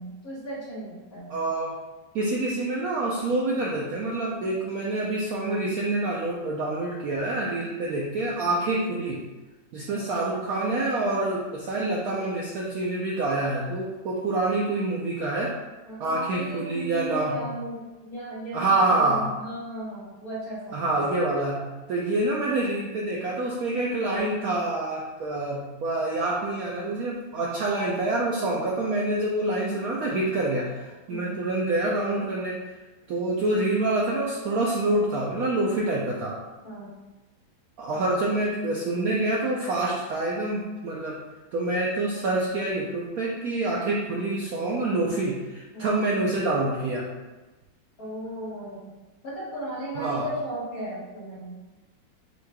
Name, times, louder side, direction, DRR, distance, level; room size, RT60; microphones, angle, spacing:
voice 1, 0.0-1.4 9.9-10.4 15.8-21.1 31.1-31.5 36.6-37.0 37.9-38.4 45.7-46.0 48.0-48.9 49.2-51.6, right 1 dB, 50° left, -8 dB, 1.8 m, -36 dB
voice 2, 1.3-1.7 2.1-9.2 9.7-15.5 16.0-17.4 18.5-19.3 20.7-21.6 21.9-32.6 33.1-36.4 37.8-41.2 41.5-47.1 50.0-50.2, right 2 dB, 70° right, -3 dB, 0.9 m, -26 dB
7.0 x 3.1 x 2.2 m, 1.2 s
omnidirectional pair, 2.1 m